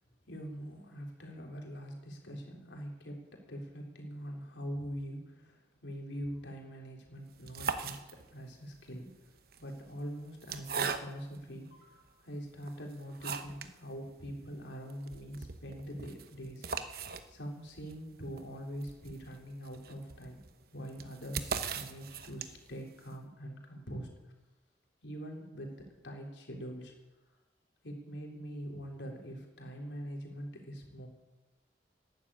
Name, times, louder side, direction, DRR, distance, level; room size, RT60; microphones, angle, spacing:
voice 1, 0.3-9.1 9.6-16.9 17.3-20.4 20.7-24.1 25.0-26.9 27.8-31.1, equal, 90° left, 1 dB, 3.6 m, -43 dB
sound 1, 7.3-8.5 9.4-11.4 12.1-12.2 12.6-13.8 14.1-14.2 14.5-14.6 14.9-22.8, right 5 dB, 55° right, 1.0 m, -40 dB
12.5 x 12.0 x 8.6 m, 1.1 s
head